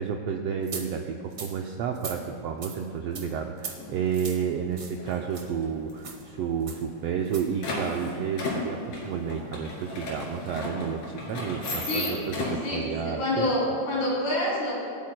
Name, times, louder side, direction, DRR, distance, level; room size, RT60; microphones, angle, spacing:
voice 1, 0.0-13.5, right 7 dB, 90° right, 3 dB, 1.3 m, -31 dB
sound 1, 0.7-0.8 1.3-1.5 1.9-2.2 2.6-2.8 3.1-3.3 3.6-3.8 4.1-4.4 4.8-5.0 5.3-5.4 6.0-6.2 6.7-6.8 7.2-7.4, right 5 dB, 70° right, 0.7 m, -38 dB
sound 2, 3.8-3.9 4.4-4.7 5.0-5.9 6.2-6.3 6.5-6.6 7.0-12.7, left 2 dB, 60° left, 3.1 m, -34 dB
voice 2, 11.9-14.7, left 1 dB, 90° left, -6 dB, 4.4 m, -28 dB
25.0 x 8.5 x 2.2 m, 2.6 s
omnidirectional pair, 3.4 m